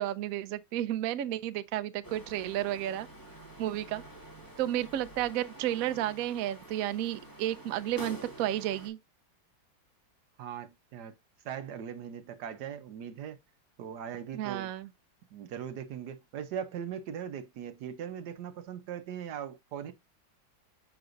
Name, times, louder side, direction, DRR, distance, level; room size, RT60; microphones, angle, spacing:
voice 1, 0.0-3.1 3.6-4.0 4.6-9.0 14.3-14.9, right 13 dB, 85° right, 0.7 m, -32 dB
sound 1, 2.0-8.9, right 1 dB, 10° left, 2.3 m, -48 dB
voice 2, 10.4-11.1 11.4-13.4 13.8-14.7 15.3-19.9, right 8 dB, 65° right, 1.2 m, -40 dB
6.4 x 5.8 x 2.6 m
omnidirectional pair, 2.1 m